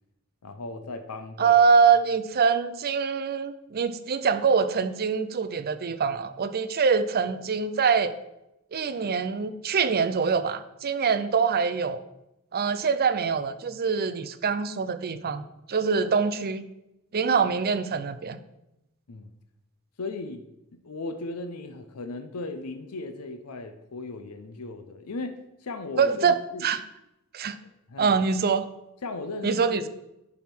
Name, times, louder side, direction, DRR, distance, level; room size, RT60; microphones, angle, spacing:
voice 1, 0.4-1.6 19.1-19.3 20.0-20.4 20.7-26.7 27.9-28.2 29.0-29.8, left 3 dB, 90° left, 8 dB, 0.7 m, -37 dB
voice 2, 1.4-8.1 8.7-12.0 12.5-16.6 17.1-18.4 26.0-26.3 26.6-26.8 27.3-27.6 28.0-28.7 29.4-29.9, right 5 dB, 45° right, 12 dB, 0.5 m, -24 dB
10.5 x 3.6 x 6.0 m, 0.90 s
head